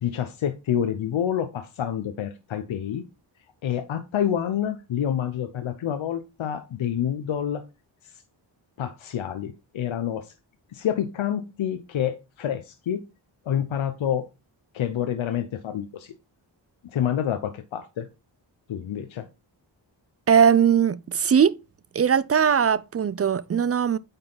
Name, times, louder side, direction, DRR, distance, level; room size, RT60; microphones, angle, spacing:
voice 1, 0.0-3.0 3.6-7.6 8.8-10.3 10.7-13.0 13.5-14.2 14.7-16.1 16.8-18.1 18.7-19.2, left 9 dB, 85° left, 0.8 m, -28 dB
voice 2, 20.3-21.6 21.9-24.0, right 7 dB, 35° right, 0.4 m, -20 dB
8.9 x 3.9 x 3.9 m
cardioid pair, 70°, 46 cm